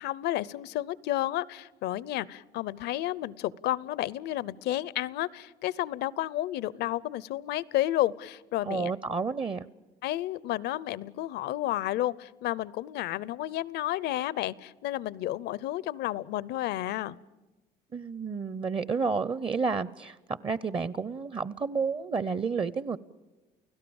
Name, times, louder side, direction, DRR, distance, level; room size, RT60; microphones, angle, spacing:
voice 1, 0.0-8.9 10.0-17.2, left 14 dB, 80° left, 21 dB, 0.7 m, -31 dB
voice 2, 8.7-9.7 17.9-23.0, right 5 dB, 30° right, 18 dB, 0.7 m, -30 dB
30.0 x 16.5 x 7.1 m, 1.2 s
cardioid pair, 110°, 17 cm